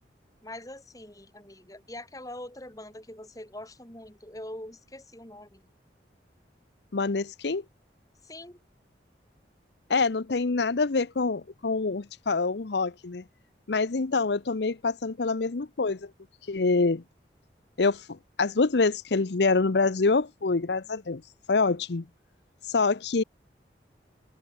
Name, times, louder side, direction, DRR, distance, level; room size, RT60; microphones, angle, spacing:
voice 1, 0.4-5.6 8.2-8.6, left 1 dB, 20° left, 3.1 m, -43 dB
voice 2, 6.9-7.6 9.9-13.2 13.7-16.1 16.5-17.0 17.8-21.2 21.5-22.0 22.6-23.2, left 4 dB, 75° left, 0.7 m, -26 dB
head